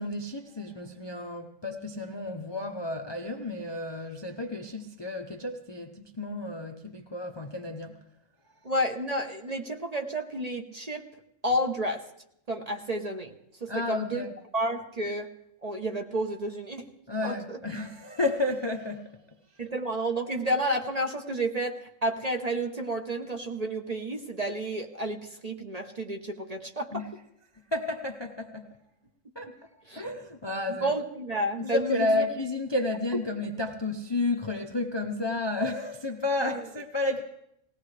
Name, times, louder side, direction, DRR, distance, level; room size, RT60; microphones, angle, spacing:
voice 1, 0.0-7.9 13.7-14.4 17.1-19.1 26.9-27.1 27.7-28.7 29.4-29.5 30.0-30.9 31.6-37.2, left 2 dB, 30° left, 4 dB, 0.5 m, -31 dB
voice 2, 8.6-11.0 11.4-12.0 12.5-13.3 13.6-14.2 14.5-15.3 15.6-16.8 17.2-17.6 19.6-27.0 29.9-30.0 30.7-32.3 36.4-36.6, right 1 dB, 35° right, 4 dB, 0.9 m, -31 dB
19.0 x 17.0 x 3.3 m, 0.77 s
omnidirectional pair, 1.4 m